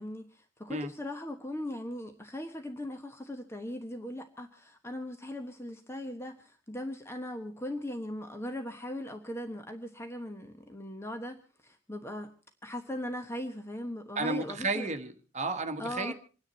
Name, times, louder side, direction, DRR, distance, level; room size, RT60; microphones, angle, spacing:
voice 1, 0.0-12.3 12.6-14.9 15.8-16.1, left 1 dB, 15° left, 5 dB, 1.2 m, -39 dB
voice 2, 14.1-16.1, right 2 dB, 35° right, 7 dB, 1.5 m, -32 dB
27.5 x 9.9 x 4.2 m, 0.39 s
head